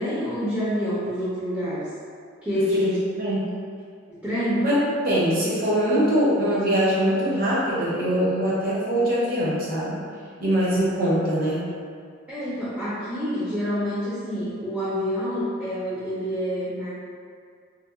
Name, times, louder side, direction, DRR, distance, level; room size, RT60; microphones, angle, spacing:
voice 1, 0.0-1.9 2.4-2.7 4.1-4.7 12.3-16.9, equal, 10° right, -11 dB, 0.5 m, -27 dB
voice 2, 2.5-3.4 4.6-4.8 5.0-9.9 10.4-11.7, equal, 45° right, -8 dB, 0.7 m, -23 dB
2.7 x 2.1 x 2.4 m, 2.2 s
head